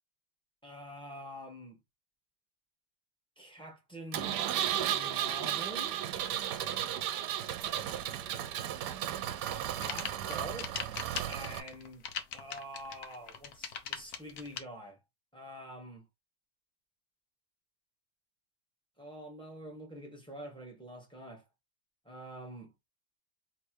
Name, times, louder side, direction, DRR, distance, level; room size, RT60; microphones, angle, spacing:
voice 1, 0.6-1.8 3.4-4.4 4.9-6.0 9.8-10.7 11.3-12.1 12.3-15.0 15.3-16.0 19.0-21.4 22.0-22.7, equal, 5° left, 1.3 m, -46 dB
Engine, 4.1-11.6, right 11 dB, 75° right, 1.2 m, -34 dB
sound 1, 9.6-14.6, left 7 dB, 65° left, 1.3 m, -40 dB
3.4 x 3.2 x 4.5 m
omnidirectional pair, 1.9 m